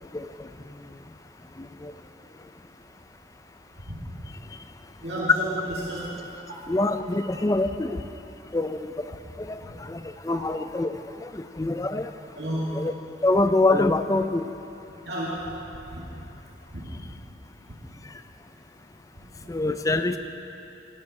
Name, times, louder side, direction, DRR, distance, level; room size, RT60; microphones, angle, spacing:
voice 1, 0.1-0.5 1.6-1.9 6.7-8.0 8.5-9.1 9.4-12.1 12.7-12.9 13.2-14.5 19.5-20.2, left 2 dB, 20° left, 9 dB, 0.4 m, -25 dB
voice 2, 5.0-6.3 9.6-9.8 12.4-12.7 15.0-15.6 15.9-16.0 16.7-16.9, right 1 dB, 65° right, -7 dB, 2.3 m, -32 dB
17.0 x 12.5 x 4.3 m, 2.9 s
head